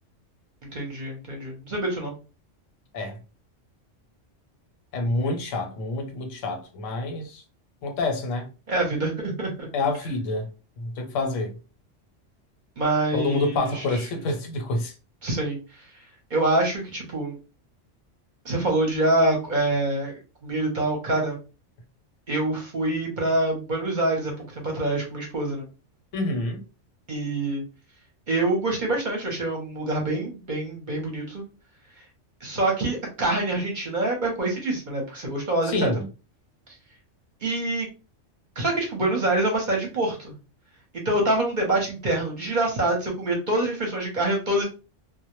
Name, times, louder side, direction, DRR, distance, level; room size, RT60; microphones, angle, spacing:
voice 1, 0.7-2.1 8.7-9.7 12.8-14.0 15.2-15.6 15.9-16.0 16.3-17.4 18.4-20.1 20.4-21.4 22.3-24.3 24.6-25.6 27.1-27.6 28.3-31.4 32.4-35.9 37.4-37.9 38.6-40.3 41.0-44.6, right 2 dB, 50° right, 0.7 m, -25 dB
voice 2, 4.9-7.4 7.8-8.5 9.7-10.5 10.8-11.5 13.1-14.9 26.1-26.6 35.7-36.1, left 2 dB, 85° left, 1.0 m, -27 dB
2.1 x 2.0 x 2.9 m
omnidirectional pair, 1.3 m